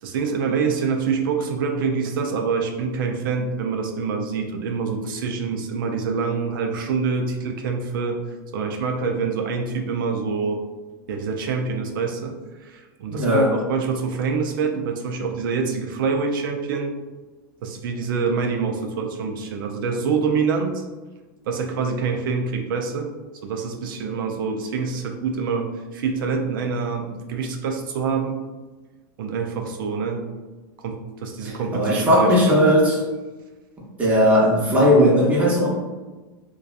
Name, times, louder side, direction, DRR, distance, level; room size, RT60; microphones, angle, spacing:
voice 1, 0.0-10.6 11.1-16.9 17.6-20.8 21.4-23.1 23.4-28.4 29.2-30.3 30.8-32.6, right 5 dB, 80° right, 3 dB, 0.4 m, -26 dB
voice 2, 13.1-13.5 31.4-33.0 34.0-35.7, equal, 10° right, -5 dB, 0.7 m, -17 dB
2.6 x 2.2 x 2.3 m, 1.2 s
supercardioid pair, 140°, 11 cm